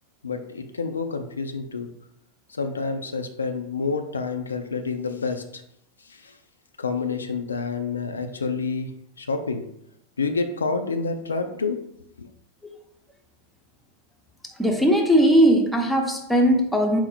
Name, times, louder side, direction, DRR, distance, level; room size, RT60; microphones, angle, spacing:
voice 1, 0.2-1.9 2.5-5.6 6.1-6.4 6.8-8.9 9.2-9.6 10.2-11.8 12.2-12.3, left 4 dB, 75° left, 6 dB, 0.3 m, -28 dB
voice 2, 14.6-17.0, equal, ahead, 1 dB, 0.6 m, -19 dB
4.4 x 2.0 x 4.0 m, 0.75 s
figure-of-eight pair, 90°, 0 cm